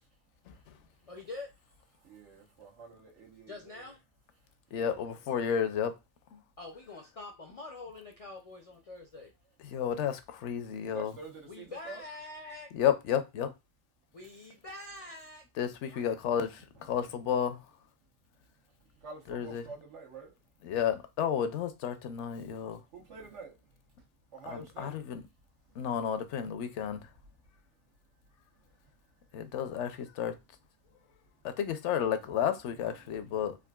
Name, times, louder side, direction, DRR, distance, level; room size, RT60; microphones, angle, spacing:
voice 1, 1.1-1.5 3.5-4.0 6.6-9.3 11.5-12.7 14.1-15.4 15.9-16.1, left 2 dB, 60° left, 0.3 m, -45 dB
voice 2, 2.0-3.9 4.7-5.1 10.9-12.0 19.0-20.3 22.9-23.5 24.3-25.0 32.7-32.9, right 4 dB, 85° right, 1.3 m, -47 dB
voice 3, 4.7-5.9 6.3-6.4 9.6-11.1 12.7-13.5 15.6-17.6 19.3-19.6 20.6-22.8 24.8-25.2 25.8-27.1 29.3-30.3 31.4-33.6, left 8 dB, 80° left, 0.9 m, -32 dB
3.7 x 2.4 x 2.2 m
omnidirectional pair, 1.2 m